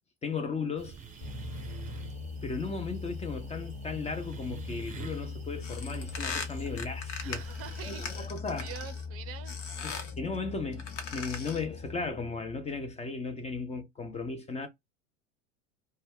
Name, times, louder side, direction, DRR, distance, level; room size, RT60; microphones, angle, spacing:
voice 1, 0.2-1.0 2.4-7.4 7.8-8.7 9.8-14.7, left 4 dB, 20° left, 0.5 m, -36 dB
sound 1, 0.8-8.3, right 7 dB, 20° right, 0.9 m, -48 dB
sound 2, 1.2-12.5, left 4 dB, 40° left, 0.8 m, -41 dB
sound 3, 5.6-9.0 9.5-10.2 10.7-11.7, left 5 dB, 75° left, 0.9 m, -40 dB
voice 2, 7.2-9.6, right 10 dB, 40° right, 0.5 m, -45 dB
2.2 x 2.1 x 3.5 m
hypercardioid pair, 80°, 38 cm